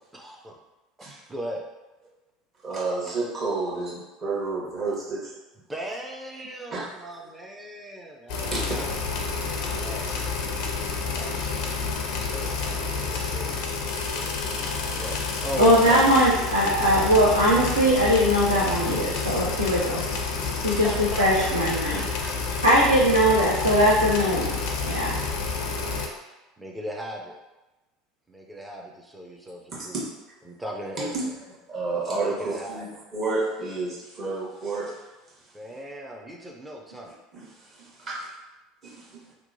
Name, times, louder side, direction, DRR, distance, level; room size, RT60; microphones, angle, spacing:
voice 1, 0.1-0.6 1.0-1.6 5.7-9.0 9.5-10.1 11.1-11.7 12.0-12.5 13.0-13.5 14.0-14.4 14.9-16.1 20.6-22.6 23.1-23.4 25.2-26.0 26.6-27.4 28.3-30.0 30.4-31.4 32.1-33.1 35.5-37.1, equal, 10° right, 0 dB, 0.5 m, -38 dB
voice 2, 2.6-3.9 4.2-5.2 6.7-6.9 8.5-8.8 29.7-29.8 31.0-31.2 31.7-34.9 37.3-37.5 37.8-38.2 38.8-39.2, right 3 dB, 40° right, -6 dB, 1.2 m, -30 dB
sound 1, 8.3-26.1, left 4 dB, 55° left, 0.4 m, -29 dB
voice 3, 11.8-12.2 15.6-20.1 20.3-22.1 22.6-25.2, equal, 85° right, -7 dB, 0.4 m, -21 dB
2.9 x 2.2 x 2.6 m, 1.1 s
figure-of-eight pair, 70°, 0 cm